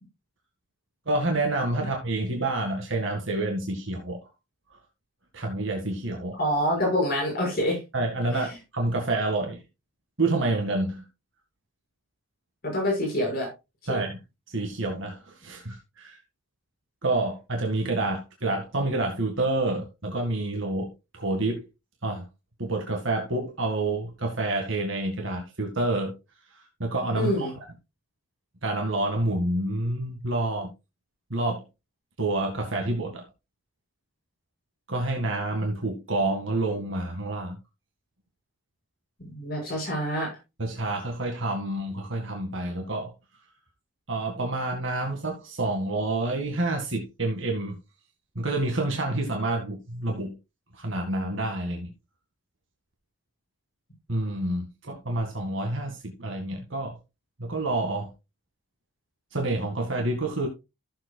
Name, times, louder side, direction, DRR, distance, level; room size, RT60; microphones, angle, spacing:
voice 1, 1.1-4.2 5.3-6.4 7.9-9.6 10.2-11.0 13.9-14.2 14.5-16.2 17.0-21.6 22.0-22.3 22.6-26.1 26.5-27.5 28.6-30.7 31.3-31.6 32.2-33.2 34.9-37.6 40.6-43.1 44.1-47.8 48.4-50.3 50.7-51.9 54.1-56.9 57.4-58.1 59.3-60.5, right 2 dB, 60° right, 1.9 m, -28 dB
voice 2, 6.4-7.8 8.3-8.4 12.6-13.5 13.9-14.0 27.2-27.5 39.2-40.3, equal, 45° left, 5.8 m, -26 dB
14.0 x 7.6 x 2.3 m
head